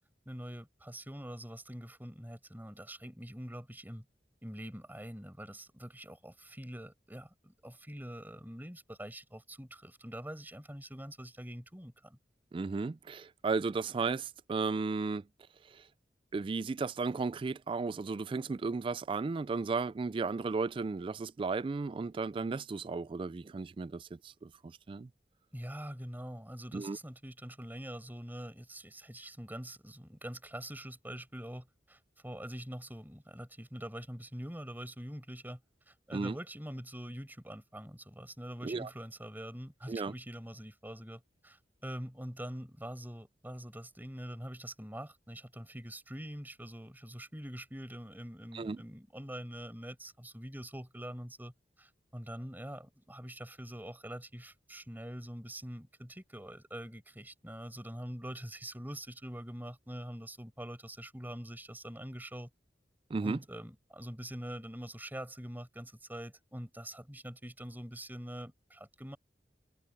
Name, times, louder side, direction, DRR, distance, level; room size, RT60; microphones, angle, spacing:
voice 1, 0.3-4.0 4.4-12.2 25.5-35.6 35.9-51.5 51.8-62.5 63.2-69.2, equal, 10° right, 5.5 m, -44 dB
voice 2, 12.5-15.2 15.7-15.8 16.3-25.1 26.7-27.0 36.1-36.4 38.6-38.9 39.9-40.1 48.5-48.8 63.1-63.4, right 4 dB, 30° right, 0.3 m, -34 dB
head